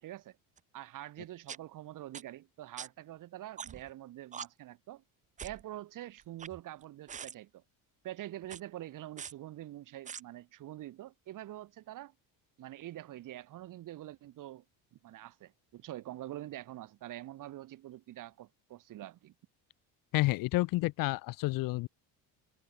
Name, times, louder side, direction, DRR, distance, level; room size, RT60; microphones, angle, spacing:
voice 1, 0.0-0.4 0.7-5.0 5.4-7.6 8.0-12.1 12.6-14.6 14.9-19.3, right 14 dB, 50° right, 3.2 m, -45 dB
sound 1, 0.6-0.7 1.5-1.6 2.1-2.2 2.8-2.9 3.6-3.9 4.3-4.5 5.4-5.6 6.2-6.8 7.1-7.3 8.4-8.6 9.2-9.3 10.1-10.2, right 7 dB, 20° right, 0.6 m, -43 dB
voice 2, 20.1-21.9, left 20 dB, 55° left, 0.6 m, -30 dB
cardioid pair, 160°, 41 cm